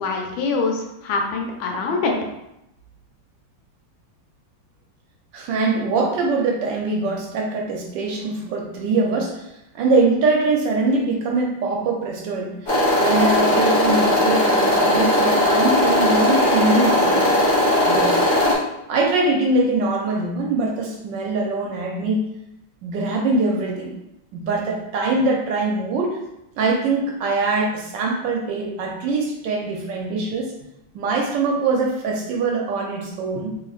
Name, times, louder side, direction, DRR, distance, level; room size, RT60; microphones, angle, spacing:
voice 1, 0.0-2.2, left 4 dB, 80° left, 1 dB, 1.4 m, -24 dB
voice 2, 5.3-12.7 13.0-17.4 17.9-18.3 18.9-22.3 22.8-23.9 24.3-26.2 26.6-30.5 30.9-33.6, right 3 dB, 75° right, 0 dB, 1.2 m, -23 dB
sound 1, 12.7-18.5, left 1 dB, 30° left, 1.0 m, -18 dB
3.8 x 3.2 x 2.4 m, 0.87 s
omnidirectional pair, 2.2 m